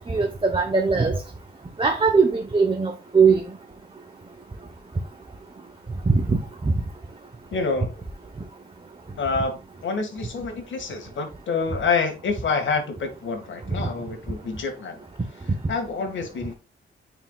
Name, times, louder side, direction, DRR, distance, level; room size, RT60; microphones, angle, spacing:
voice 1, 0.1-1.2 1.8-3.4 6.1-6.2, right 5 dB, 25° right, 1.0 m, -20 dB
voice 2, 7.5-8.0 9.2-15.0 15.7-16.5, left 4 dB, 70° left, 2.0 m, -27 dB
9.1 x 4.9 x 2.4 m
cardioid pair, 80°, 20 cm